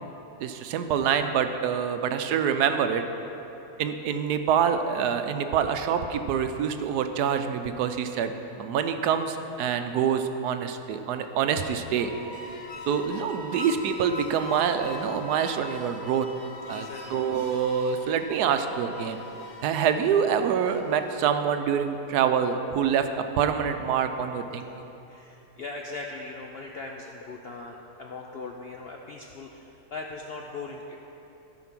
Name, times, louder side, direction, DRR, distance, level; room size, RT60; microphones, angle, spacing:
voice 1, 0.4-3.0 3.8-8.3 8.6-12.1 12.9-16.3 16.7-19.2 19.6-23.1 23.4-24.7, right 7 dB, 80° right, 8 dB, 1.1 m, -26 dB
sound 1, 11.8-21.2, left 2 dB, 40° left, 1.0 m, -41 dB
voice 2, 16.7-17.2 25.1-31.0, left 3 dB, 70° left, 1 dB, 0.5 m, -40 dB
13.5 x 5.1 x 5.9 m, 3.0 s
omnidirectional pair, 1.7 m